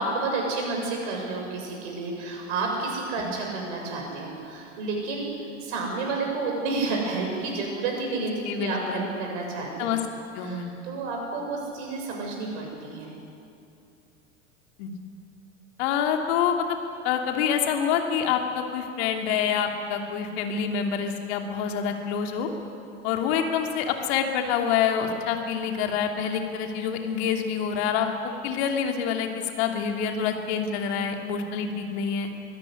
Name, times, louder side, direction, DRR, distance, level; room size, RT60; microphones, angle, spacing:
voice 1, 0.0-5.3 5.6-10.0 10.4-13.1, right 3 dB, 55° right, 1 dB, 7.4 m, -30 dB
voice 2, 8.4-9.0 9.8-10.0 10.3-10.7 14.8-14.9 15.8-16.6 17.0-22.5 23.0-28.1 28.4-32.3, left 7 dB, 55° left, 4 dB, 2.9 m, -26 dB
23.5 x 17.5 x 9.9 m, 2.7 s
figure-of-eight pair, 85°, 38 cm